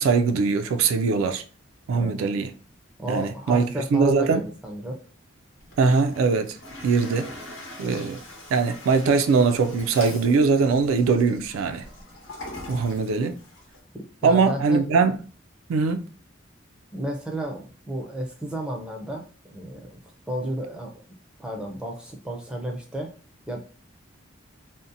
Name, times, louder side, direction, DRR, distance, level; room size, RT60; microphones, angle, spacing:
voice 1, 0.0-1.4 1.9-2.5 3.1-4.4 5.8-6.6 6.8-7.3 7.8-8.2 8.5-11.8 12.7-13.4 14.2-15.2 15.7-16.0, right 4 dB, 85° right, 0.3 m, -21 dB
voice 2, 3.0-5.0 13.9-14.8 16.9-20.0 20.3-21.0 21.4-23.1 23.5-23.6, right 1 dB, 5° right, 0.4 m, -32 dB
Toilet flush, 5.6-13.8, left 1 dB, 75° left, 0.9 m, -42 dB
2.6 x 2.0 x 2.6 m
head